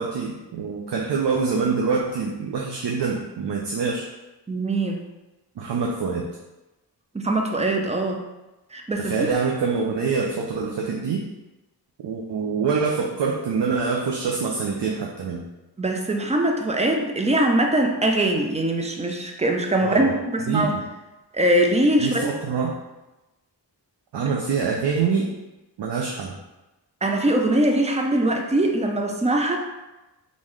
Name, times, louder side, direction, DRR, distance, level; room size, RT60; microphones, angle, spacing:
voice 1, 0.0-4.1 5.6-6.3 9.0-11.2 12.0-15.4 19.8-20.1 20.5-20.8 22.0-22.7 24.1-25.3 25.8-26.4, right 5 dB, 70° right, -1 dB, 0.5 m, -25 dB
voice 2, 4.5-5.0 7.1-8.2 8.7-9.1 15.8-20.7 21.3-22.3 27.0-29.6, right 1 dB, 15° right, 3 dB, 0.4 m, -22 dB
3.7 x 2.6 x 3.1 m, 1.0 s
wide cardioid pair, 95°, 43 cm